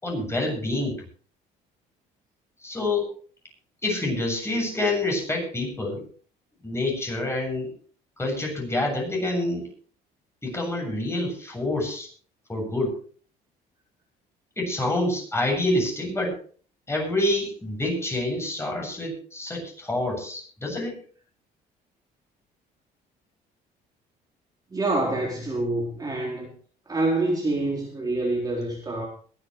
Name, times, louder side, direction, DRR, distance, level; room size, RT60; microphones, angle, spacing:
voice 1, 0.0-1.0 2.6-3.1 3.8-6.0 6.6-7.7 8.2-9.7 10.4-12.1 12.5-12.9 14.6-16.3 16.9-21.0, left 1 dB, 15° left, 1 dB, 7.7 m, -27 dB
voice 2, 24.7-26.5 26.9-29.1, right 2 dB, 20° right, -2 dB, 4.0 m, -26 dB
22.0 x 11.5 x 3.3 m, 0.44 s
cardioid pair, 110°, 17 cm